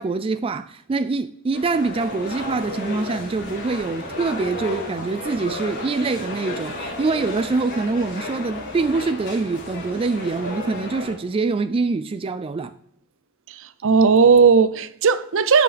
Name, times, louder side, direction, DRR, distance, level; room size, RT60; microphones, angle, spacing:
voice 1, 0.0-12.7, right 3 dB, 25° right, 0.3 m, -25 dB
sound 1, 1.5-11.1, left 2 dB, 55° left, 4.1 m, -33 dB
voice 2, 13.6-15.6, right 5 dB, 65° right, 0.6 m, -16 dB
14.5 x 5.9 x 3.4 m
head